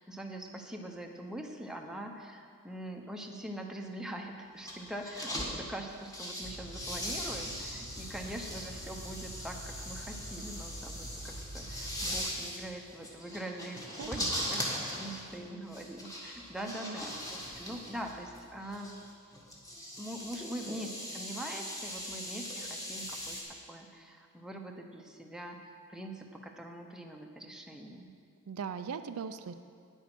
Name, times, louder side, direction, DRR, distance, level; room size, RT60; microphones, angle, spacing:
voice 1, 0.0-13.8 14.1-14.6 14.9-18.9 20.0-23.4 23.7-28.1, right 1 dB, 5° right, 2 dB, 0.8 m, -43 dB
sound 1, 4.6-5.5 5.9-23.4, equal, 15° left, 1.7 m, -40 dB
sound 2, 6.4-12.2, right 1 dB, 50° left, 1.8 m, -46 dB
voice 2, 14.0-14.6 16.7-17.0 28.5-29.5, right 6 dB, 70° right, 10 dB, 0.4 m, -40 dB
9.9 x 8.3 x 6.0 m, 2.2 s
head